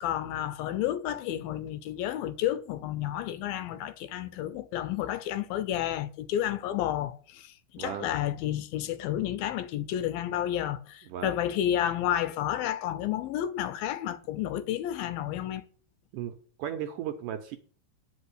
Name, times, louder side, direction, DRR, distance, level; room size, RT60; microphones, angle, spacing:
voice 1, 0.0-15.6, left 11 dB, 80° left, 2.3 m, -31 dB
voice 2, 7.8-8.1 11.0-11.4 16.1-17.6, right 10 dB, 75° right, 2.0 m, -36 dB
9.5 x 5.3 x 8.1 m
omnidirectional pair, 4.5 m